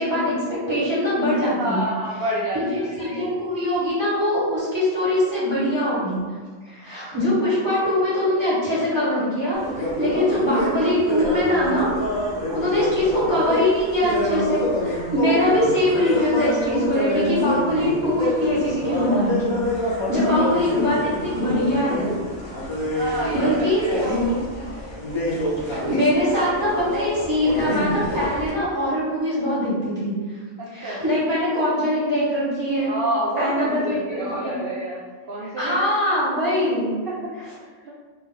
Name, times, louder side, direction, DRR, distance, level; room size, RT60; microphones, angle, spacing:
voice 1, 0.0-1.8 2.5-6.2 6.6-9.6 9.9-11.9 12.5-19.6 19.8-22.1 22.8-24.3 25.6-30.1 30.7-32.9 33.4-34.6 35.6-36.9, left 1 dB, 20° right, -10 dB, 1.4 m, -22 dB
voice 2, 1.4-3.2 12.5-12.8 20.2-20.6 22.9-24.0 30.6-31.0 32.9-35.8 37.1-37.2 37.6-37.9, right 1 dB, 65° right, -5 dB, 0.5 m, -29 dB
sound 1, 9.5-28.5, left 1 dB, 35° left, 0.4 m, -27 dB
2.6 x 2.5 x 3.8 m, 1.5 s
omnidirectional pair, 1.5 m